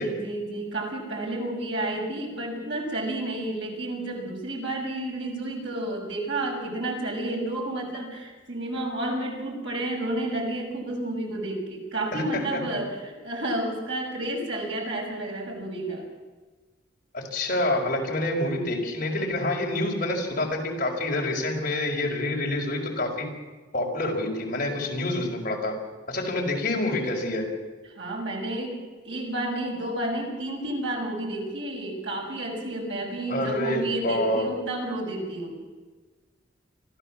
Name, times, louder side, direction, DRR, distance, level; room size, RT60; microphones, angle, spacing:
voice 1, 0.0-16.1 28.0-35.6, right 1 dB, 75° right, 0 dB, 6.5 m, -31 dB
voice 2, 12.1-12.6 17.1-23.3 23.7-25.7 26.1-27.4 33.3-34.5, left 1 dB, 50° left, 0 dB, 5.1 m, -27 dB
24.5 x 15.5 x 7.4 m, 1.3 s
head